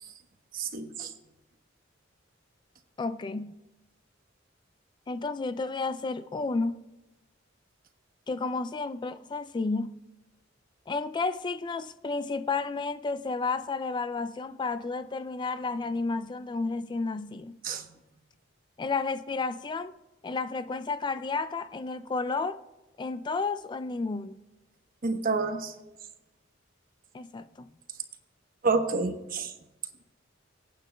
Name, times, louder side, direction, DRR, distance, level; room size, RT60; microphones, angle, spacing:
voice 1, 0.5-1.1 17.6-17.8 25.0-25.7 28.6-29.5, right 4 dB, 45° right, 1.0 m, -28 dB
voice 2, 3.0-3.6 5.1-6.8 8.3-10.0 10.9-17.6 18.8-19.9 20.2-22.6 23.0-24.3 27.1-27.7, left 3 dB, 25° left, 0.3 m, -31 dB
25.0 x 9.0 x 2.2 m
head